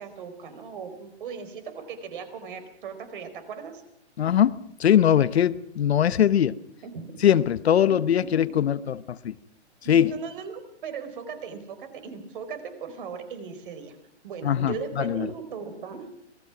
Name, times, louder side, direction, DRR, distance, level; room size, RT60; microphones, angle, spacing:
voice 1, 0.0-3.8 6.8-7.2 7.9-8.0 9.8-14.0 14.2-16.1, right 6 dB, 50° right, 4.7 m, -38 dB
voice 2, 4.2-6.6 7.2-9.4 9.9-10.1 14.4-15.3, left 10 dB, 65° left, 1.0 m, -21 dB
26.5 x 20.0 x 6.0 m
hypercardioid pair, 160°, 34 cm